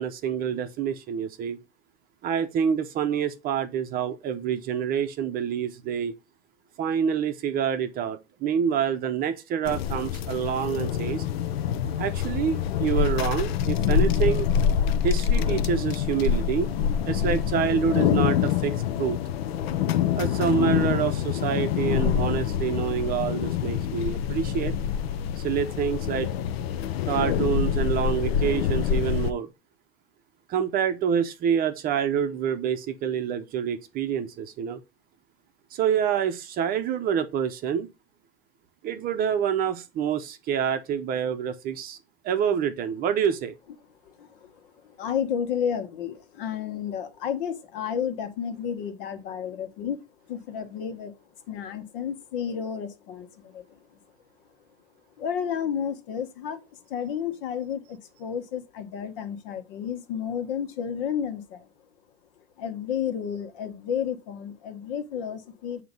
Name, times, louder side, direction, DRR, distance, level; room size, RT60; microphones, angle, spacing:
voice 1, 0.0-1.6 2.2-6.1 6.8-11.2 12.0-14.5 15.0-16.7 17.0-19.2 20.2-24.8 25.4-26.3 27.1-29.5 30.5-34.8 35.7-37.9 38.8-42.0 42.2-43.5, right 8 dB, 30° right, 0.7 m, -27 dB
sound 1, 9.7-29.3, left 9 dB, 80° left, 0.7 m, -26 dB
voice 2, 44.0-50.0 50.3-51.1 51.5-54.0 55.2-61.7 62.6-65.8, left 8 dB, 60° left, 1.4 m, -32 dB
7.7 x 2.9 x 5.3 m
supercardioid pair, 145°, 30 cm